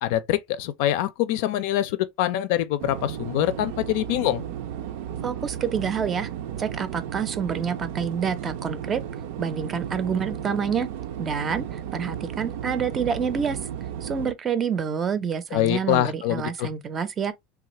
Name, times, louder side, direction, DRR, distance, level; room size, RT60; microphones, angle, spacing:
voice 1, 0.0-4.4 15.5-16.7, left 13 dB, 75° left, 0.4 m, -24 dB
sound 1, 2.8-14.3, right 9 dB, 80° right, 0.5 m, -34 dB
voice 2, 5.2-6.3 6.6-9.0 9.4-10.9 11.2-13.6 14.0-17.3, right 6 dB, 30° right, 0.5 m, -27 dB
3.2 x 2.4 x 2.9 m
supercardioid pair, 140°, 0 cm